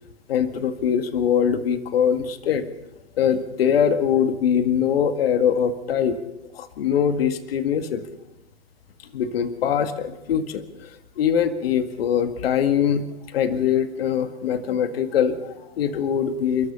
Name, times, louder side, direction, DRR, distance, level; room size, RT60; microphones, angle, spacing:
voice 1, 0.3-2.7 3.2-6.2 6.5-8.1 9.1-13.1 13.3-16.7, left 8 dB, 65° left, 9 dB, 2.0 m, -22 dB
30.0 x 13.0 x 6.9 m, 0.97 s
hypercardioid pair, 130°, 32 cm